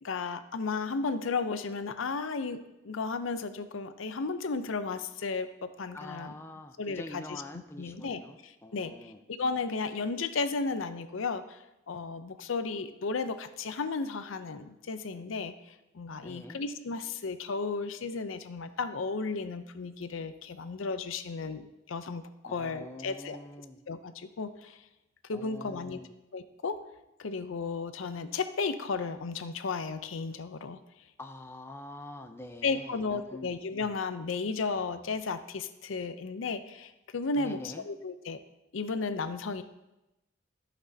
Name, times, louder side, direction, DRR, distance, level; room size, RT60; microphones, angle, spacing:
voice 1, 0.0-6.3 6.8-7.4 7.8-23.4 23.9-24.8 25.3-26.0 26.3-26.8 27.2-30.8 32.6-38.4 38.7-39.6, left 4 dB, 85° left, 11 dB, 0.6 m, -34 dB
voice 2, 5.9-9.2 16.2-16.6 22.5-23.8 25.3-26.1 31.2-33.5 37.4-37.8, left 1 dB, 10° left, 5 dB, 0.5 m, -45 dB
14.5 x 6.0 x 2.7 m, 0.96 s
head